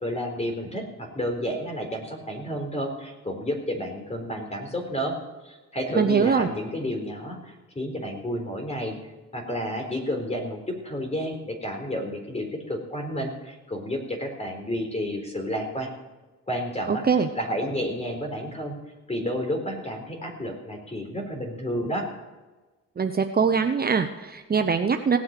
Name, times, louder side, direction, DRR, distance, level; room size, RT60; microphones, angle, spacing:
voice 1, 0.0-5.1 5.4-9.0 9.3-15.9 16.5-17.0 17.3-18.7 19.1-22.1, equal, 20° left, 3 dB, 4.0 m, -31 dB
voice 2, 5.9-6.5 16.9-17.3 23.0-25.2, right 5 dB, 30° right, 7 dB, 0.9 m, -22 dB
17.5 x 8.4 x 6.7 m, 1.2 s
cardioid pair, 90°, 30 cm